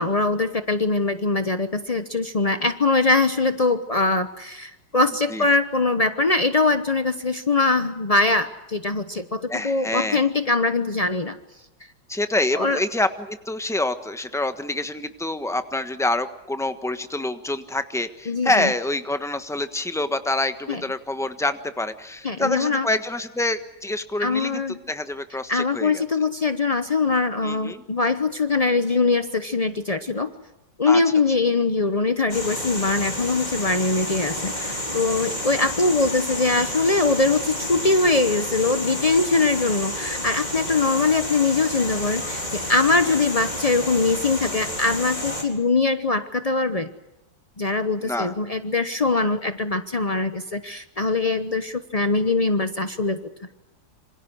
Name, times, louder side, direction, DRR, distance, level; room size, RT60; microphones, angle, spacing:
voice 1, 0.0-11.4 12.6-12.8 18.3-18.7 20.7-20.8 22.2-22.9 24.2-24.8 25.5-30.3 30.8-46.9 47.6-53.2, left 3 dB, 70° left, 10 dB, 0.3 m, -22 dB
voice 2, 9.5-10.2 12.1-24.6 24.9-26.0 27.4-27.8 30.9-31.0 35.6-35.7 48.0-48.3, left 2 dB, ahead, 9 dB, 0.8 m, -26 dB
sound 1, 32.3-45.4, left 1 dB, 20° left, 4.4 m, -30 dB
27.0 x 26.5 x 6.4 m, 0.96 s
omnidirectional pair, 2.3 m